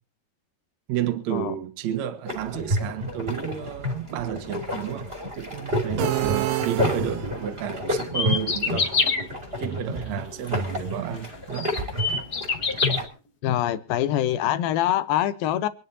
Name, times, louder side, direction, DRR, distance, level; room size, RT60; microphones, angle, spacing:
voice 1, 0.9-8.9 9.6-11.7, right 10 dB, 60° right, 2.2 m, -31 dB
sound 1, 2.3-13.1, left 1 dB, 20° right, 2.4 m, -30 dB
sound 2, 6.0-7.6, right 14 dB, 75° right, 2.5 m, -27 dB
sound 3, 8.0-9.2 10.9-11.0 11.5-13.0, left 4 dB, 60° left, 1.0 m, -24 dB
voice 2, 13.4-15.7, left 12 dB, 80° left, 2.6 m, -24 dB
26.5 x 10.0 x 2.7 m
omnidirectional pair, 4.4 m